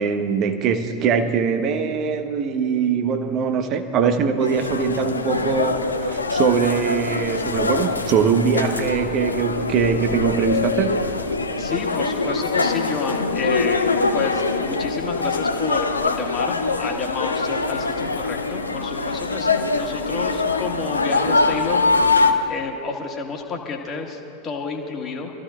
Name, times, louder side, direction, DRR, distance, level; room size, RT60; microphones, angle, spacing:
voice 1, 0.0-11.0, right 6 dB, 35° right, 8 dB, 1.0 m, -22 dB
sound 1, 4.4-22.3, left 3 dB, 80° left, 0.8 m, -23 dB
voice 2, 11.5-13.9 14.1-21.8 22.1-25.3, left 5 dB, 25° left, 1 dB, 1.8 m, -30 dB
26.5 x 14.5 x 2.5 m, 2.7 s
figure-of-eight pair, 90°, 0 cm